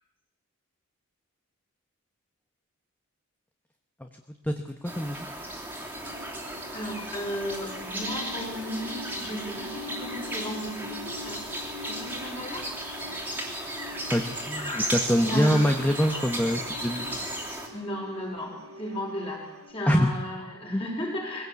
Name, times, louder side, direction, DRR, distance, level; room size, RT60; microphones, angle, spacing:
voice 1, 4.8-5.3 14.1-17.2 19.9-20.1 20.7-20.8, equal, 10° left, 5 dB, 1.0 m, -24 dB
sound 1, 4.8-17.7, right 1 dB, 10° right, 2.9 m, -35 dB
sound 2, 6.0-19.7, left 2 dB, 80° right, 3.4 m, -44 dB
voice 2, 6.7-12.8 14.6-14.9 15.2-16.3 17.7-21.5, equal, 25° left, 0 dB, 5.2 m, -35 dB
21.0 x 16.5 x 8.3 m, 0.94 s
head